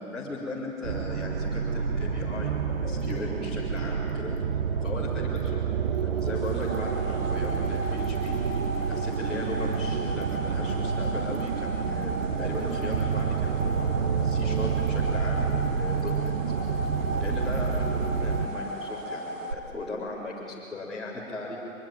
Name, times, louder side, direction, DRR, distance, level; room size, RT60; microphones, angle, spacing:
voice 1, 0.0-4.4 4.8-8.4 8.8-16.3 16.9-21.6, left 2 dB, ahead, -12 dB, 3.9 m, -38 dB
sound 1, 0.8-18.5, right 6 dB, 40° right, 1.1 m, -28 dB
sound 2, 6.4-19.5, equal, 65° right, 3.1 m, -36 dB
24.5 x 23.5 x 9.1 m, 2.4 s
figure-of-eight pair, 135°, 42 cm